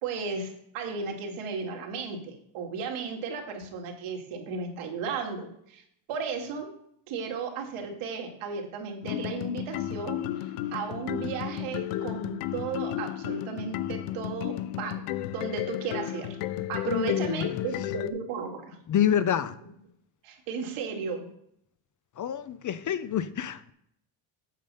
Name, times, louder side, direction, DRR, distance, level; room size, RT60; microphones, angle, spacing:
voice 1, 0.0-5.8 6.1-6.7 7.1-16.4 16.7-18.8 20.2-21.3, right 5 dB, 85° right, 2 dB, 2.3 m, -35 dB
sound 1, 9.0-18.1, left 13 dB, 85° left, 0.7 m, -33 dB
voice 2, 16.8-17.6 18.9-19.6 22.2-23.7, left 9 dB, 40° left, 14 dB, 0.6 m, -27 dB
8.6 x 5.5 x 5.5 m, 0.71 s
cardioid pair, 120°, 49 cm